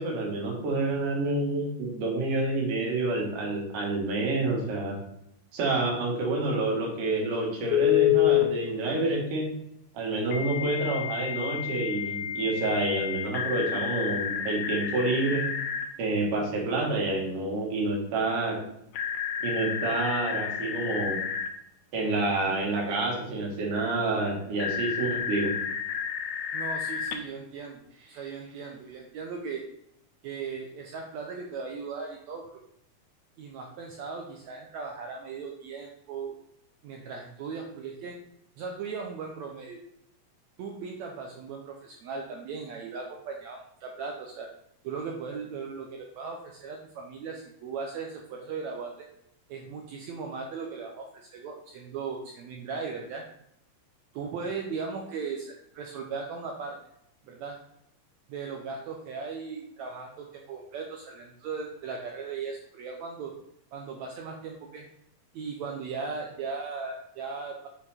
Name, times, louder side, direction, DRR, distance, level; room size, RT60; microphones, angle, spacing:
voice 1, 0.0-5.0 5.5-9.5 9.9-15.5 16.0-18.6 19.4-21.2 21.9-25.5, right 2 dB, 65° right, -2 dB, 3.1 m, -28 dB
Telephone, 7.7-8.5 10.3-15.8 18.9-21.5 24.6-27.1, left 10 dB, 85° left, 2.5 m, -29 dB
voice 2, 26.5-29.6 30.2-32.6 33.4-36.4 36.8-38.2 38.6-39.8 40.6-44.5 44.8-48.9 49.5-53.2 54.1-56.8 57.3-57.6 58.3-63.3 63.7-64.9 65.3-67.7, right 5 dB, 85° right, 1 dB, 1.5 m, -37 dB
6.9 x 4.2 x 4.3 m, 0.75 s
omnidirectional pair, 4.0 m